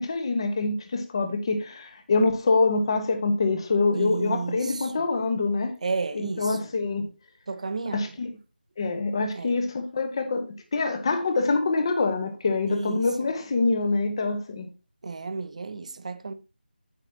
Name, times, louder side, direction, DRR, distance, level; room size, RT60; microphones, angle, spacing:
voice 1, 0.0-5.7 6.1-7.1 7.9-8.3 8.8-14.7, left 3 dB, 30° left, 1.2 m, -25 dB
voice 2, 3.9-5.1 5.8-6.7 7.5-8.2 9.3-9.6 12.7-13.3 15.0-16.3, right 4 dB, 40° right, 0.8 m, -32 dB
9.1 x 8.0 x 2.9 m
figure-of-eight pair, 165°, 5 cm